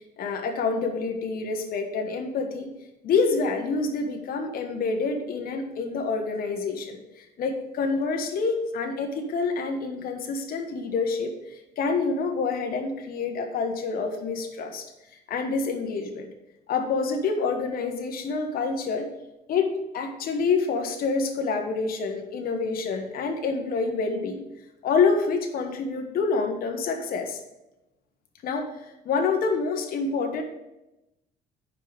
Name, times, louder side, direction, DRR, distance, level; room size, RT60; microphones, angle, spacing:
voice 1, 0.2-2.7 3.0-14.8 15.3-16.3 16.7-19.1 19.5-24.5 24.8-27.4 28.4-28.7 29.0-30.4, left 4 dB, 60° left, 4 dB, 1.2 m, -27 dB
5.3 x 5.1 x 6.2 m, 0.94 s
cardioid pair, 110°, 17 cm